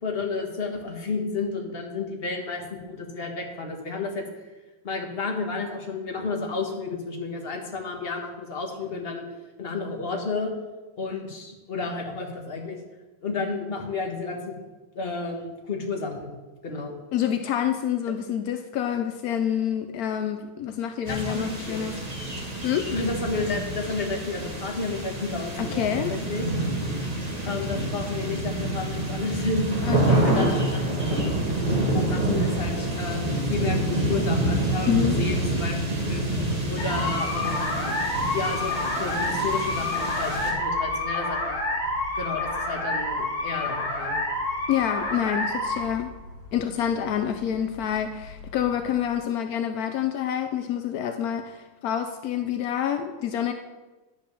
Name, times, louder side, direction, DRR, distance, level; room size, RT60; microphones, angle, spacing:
voice 1, 0.0-2.6 2.9-4.2 4.8-9.2 9.6-10.5 11.0-12.8 13.2-14.6 14.9-16.3 16.6-16.9 21.1-21.8 22.9-26.5 27.5-29.7 30.1-30.8 31.1-31.3 31.9-35.7 36.1-36.2 36.7-37.9 38.3-41.6 42.1-44.2, left 3 dB, 35° left, 1 dB, 1.4 m, -31 dB
voice 2, 17.1-22.0 22.6-22.9 25.6-26.1 29.8-30.5 34.9-35.2 44.7-46.1 46.5-53.5, left 9 dB, 80° left, 7 dB, 0.8 m, -27 dB
sound 1, 21.0-40.5, right 1 dB, 20° right, 1.5 m, -27 dB
sound 2, 36.8-49.0, left 2 dB, 50° left, 2.8 m, -29 dB
10.5 x 5.2 x 6.8 m, 1.2 s
omnidirectional pair, 2.2 m